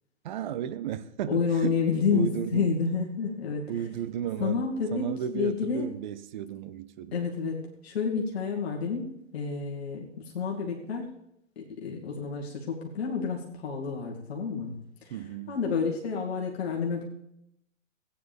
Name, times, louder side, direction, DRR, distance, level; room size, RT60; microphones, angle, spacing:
voice 1, 0.2-1.8 2.1-2.7 3.7-4.6 4.9-7.2 15.1-15.6, right 9 dB, 40° right, 14 dB, 0.6 m, -34 dB
voice 2, 1.3-3.7 4.4-5.1 5.3-5.8 7.1-11.1 11.6-15.2 15.5-17.1, left 5 dB, 55° left, -2 dB, 2.3 m, -29 dB
16.5 x 9.5 x 3.6 m, 0.78 s
hypercardioid pair, 125°, 38 cm